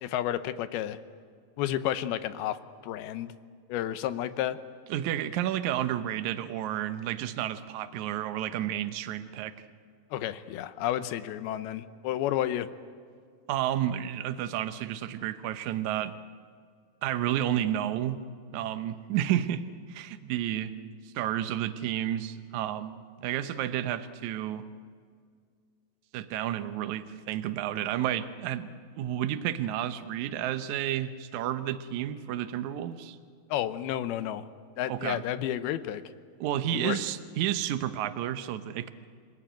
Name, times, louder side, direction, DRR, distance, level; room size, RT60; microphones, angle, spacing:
voice 1, 0.0-1.0 1.6-2.6 2.8-3.3 3.7-4.6 10.1-12.7 33.5-34.4 34.8-36.0 36.7-37.0, left 12 dB, 85° left, 12 dB, 2.8 m, -31 dB
voice 2, 4.9-9.5 13.5-16.1 17.0-18.2 18.5-24.6 26.1-33.2 34.9-35.2 36.4-38.9, right 11 dB, 70° right, 10 dB, 1.9 m, -31 dB
27.5 x 18.5 x 9.1 m, 2.1 s
omnidirectional pair, 4.3 m